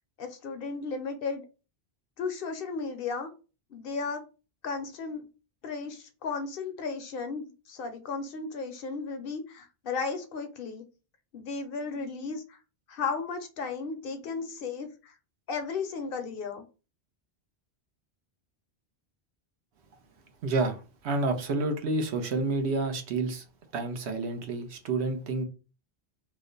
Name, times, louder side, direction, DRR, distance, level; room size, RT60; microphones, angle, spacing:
voice 1, 0.2-1.4 2.2-3.3 3.7-4.2 4.6-5.3 5.6-10.9 11.3-12.6 12.9-15.2 15.5-16.6, left 4 dB, 65° left, 0.7 m, -35 dB
voice 2, 20.4-23.4 23.7-25.4, right 3 dB, 85° right, 1.0 m, -29 dB
3.0 x 2.1 x 3.7 m
omnidirectional pair, 1.1 m